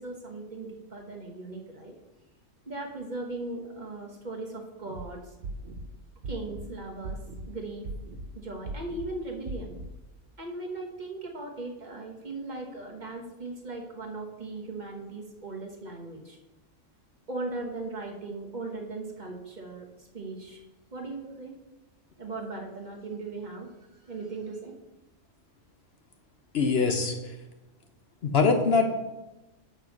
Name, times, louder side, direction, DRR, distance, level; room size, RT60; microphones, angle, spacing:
voice 1, 0.0-1.9 2.7-5.3 6.3-7.2 7.5-7.9 8.3-9.7 10.4-16.4 17.3-20.6 20.9-21.5 22.2-23.7 24.1-24.7, right 2 dB, 35° right, 0 dB, 1.2 m, -38 dB
sound 1, 4.8-5.0 5.4-5.9 6.2-6.7 7.0-7.5 7.8-8.3 8.6-9.1 9.5-9.9, right 3 dB, 90° right, 1.3 m, -38 dB
voice 2, 26.5-27.3 28.2-28.9, left 4 dB, 55° left, 5 dB, 1.0 m, -23 dB
7.0 x 5.9 x 5.9 m, 1.0 s
omnidirectional pair, 1.3 m